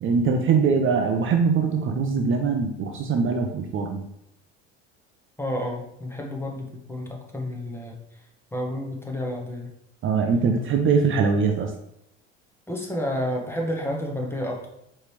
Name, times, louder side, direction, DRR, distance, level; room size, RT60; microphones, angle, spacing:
voice 1, 0.0-4.1 10.0-11.7, right 5 dB, 35° right, 4 dB, 0.5 m, -22 dB
voice 2, 5.4-8.2 8.5-9.7 12.7-14.7, left 1 dB, 5° left, 0 dB, 1.0 m, -30 dB
4.8 x 3.2 x 3.2 m, 0.81 s
hypercardioid pair, 80°, 34 cm